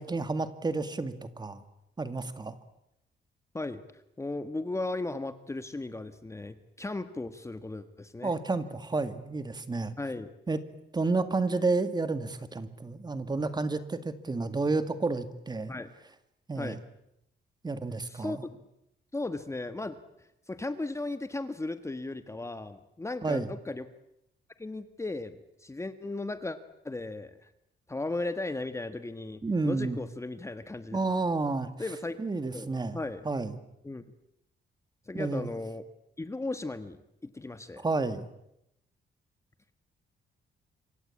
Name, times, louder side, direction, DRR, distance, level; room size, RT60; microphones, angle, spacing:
voice 1, 0.0-1.6 2.0-2.6 8.2-9.9 10.5-10.6 10.9-15.7 16.5-16.8 17.6-18.4 23.2-23.5 29.4-30.0 30.9-31.7 32.2-33.0 33.2-33.6 35.1-35.5 37.8-38.3, right 3 dB, 25° right, 11 dB, 2.0 m, -30 dB
voice 2, 4.2-8.3 10.0-10.3 15.7-15.9 16.6-16.8 18.1-18.5 19.1-23.8 24.6-26.6 26.8-27.5 27.9-31.0 31.8-32.2 32.5-33.3 33.8-34.0 35.1-35.8 36.2-37.8, left 2 dB, 15° left, 11 dB, 1.4 m, -36 dB
27.0 x 24.5 x 8.6 m, 0.82 s
cardioid pair, 125°, 18 cm